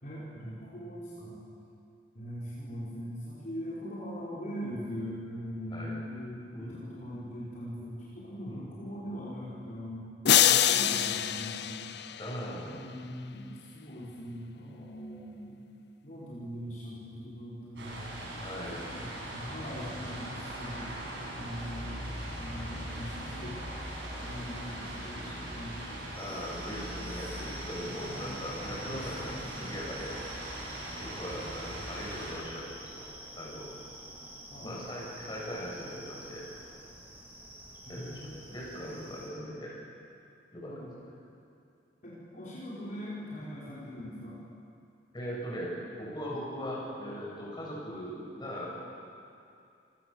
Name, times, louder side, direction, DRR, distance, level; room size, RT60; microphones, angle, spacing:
voice 1, 0.0-1.4 2.1-10.1 10.4-11.8 12.6-15.5 16.0-18.0 18.7-21.0 21.3-23.6 24.2-26.1 27.2-27.4 27.9-28.3 28.8-29.7 31.3-32.0 34.5-34.7 37.8-38.4 40.7-40.9 42.0-44.4, equal, 45° left, -9 dB, 5.4 m, -41 dB
voice 2, 6.5-6.8 8.4-8.7 12.2-12.7 18.4-18.8 26.2-30.2 31.0-33.0 33.4-33.7 34.6-36.4 37.9-39.7 40.5-41.1 45.1-48.7, equal, 25° left, -5 dB, 7.6 m, -40 dB
sound 1, 10.3-12.6, left 10 dB, 60° left, 0.7 m, -25 dB
sound 2, 17.8-32.3, right 1 dB, 75° right, 7.7 m, -40 dB
sound 3, 26.1-39.3, right 1 dB, 10° right, 4.7 m, -48 dB
27.5 x 19.0 x 7.3 m, 2.5 s
head